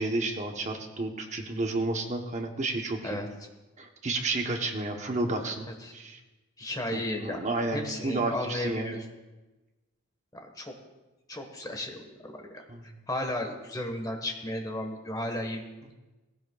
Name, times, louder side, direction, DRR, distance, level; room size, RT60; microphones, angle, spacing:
voice 1, 0.0-3.2 3.8-5.7 5.9-6.2 6.9-9.0 12.7-12.8, right 2 dB, 35° right, 3 dB, 1.0 m, -31 dB
voice 2, 6.6-7.4 7.7-9.0 10.5-10.7 11.3-15.6, left 1 dB, 20° left, 3 dB, 1.3 m, -34 dB
17.5 x 15.5 x 2.4 m, 1.1 s
head